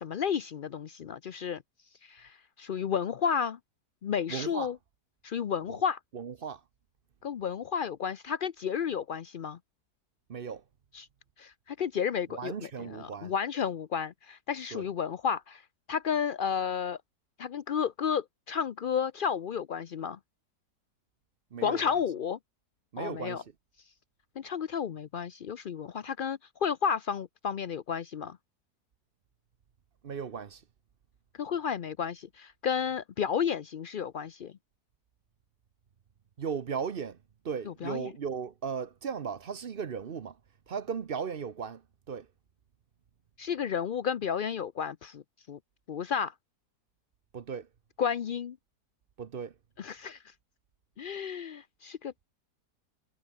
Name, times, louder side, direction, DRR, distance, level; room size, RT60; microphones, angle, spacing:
voice 1, 0.0-1.6 2.0-3.6 4.0-4.8 5.2-6.0 7.2-9.6 10.9-11.1 11.4-15.6 15.9-17.0 17.4-20.2 21.6-22.4 23.0-23.4 24.4-28.4 31.4-34.5 37.7-38.1 43.4-45.2 45.5-45.6 45.9-46.3 48.0-48.6 49.8-50.2 51.0-52.2, left 7 dB, 75° left, 0.4 m, -32 dB
voice 2, 4.3-4.7 6.1-6.6 10.3-10.6 12.3-13.3 14.7-14.9 21.5-21.9 22.9-23.4 30.0-30.6 36.4-37.2 37.4-40.4 40.7-41.8 42.1-42.3 47.3-47.7 49.2-49.5, right 6 dB, 45° right, 0.8 m, -36 dB
omnidirectional pair, 1.7 m